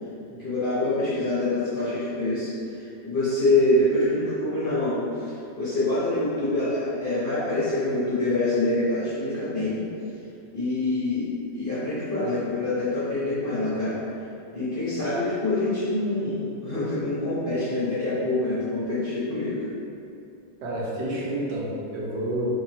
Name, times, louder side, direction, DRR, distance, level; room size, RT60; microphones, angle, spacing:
voice 1, 0.4-9.8 10.5-11.3 11.5-14.0 14.5-19.7, left 2 dB, 45° left, -12 dB, 0.7 m, -25 dB
voice 2, 20.6-22.5, right 1 dB, 85° right, -5 dB, 1.4 m, -29 dB
2.9 x 2.8 x 4.1 m, 2.7 s
omnidirectional pair, 1.9 m